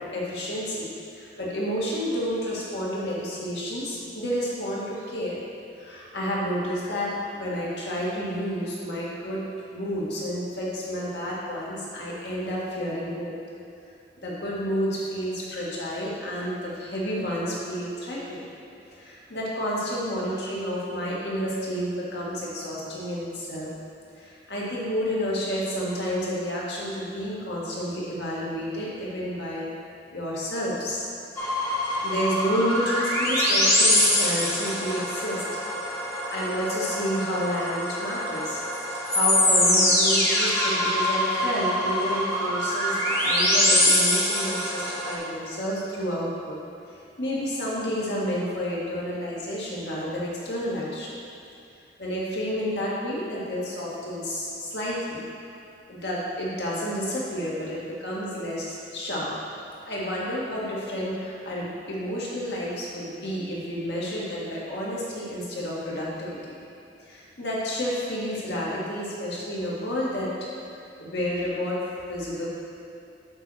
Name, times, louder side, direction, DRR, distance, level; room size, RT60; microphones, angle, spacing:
voice 1, 0.1-5.4 5.8-9.4 9.7-13.4 14.2-18.5 18.9-23.7 24.1-29.7 30.1-31.1 32.0-35.4 36.3-38.6 39.1-46.6 47.2-51.2 52.0-55.2 55.9-59.3 59.9-66.6 67.1-70.5 71.0-71.8 72.1-72.5, equal, 65° left, -6 dB, 1.8 m, -30 dB
sound 1, 31.4-45.2, left 1 dB, 15° left, 1.2 m, -24 dB
7.7 x 4.3 x 6.2 m, 2.6 s
head